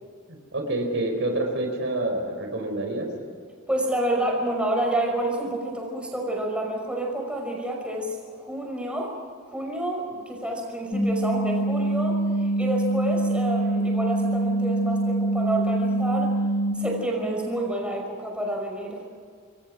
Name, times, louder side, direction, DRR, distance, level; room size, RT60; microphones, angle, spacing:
voice 1, 0.3-3.1, right 2 dB, 60° right, 3 dB, 4.3 m, -27 dB
voice 2, 3.7-9.1 9.4-12.2 12.6-16.3 16.8-19.0, right 1 dB, 5° right, 0 dB, 5.7 m, -28 dB
sound 1, 10.9-16.7, right 2 dB, 30° left, 2.4 m, -24 dB
28.0 x 22.0 x 6.2 m, 2.1 s
head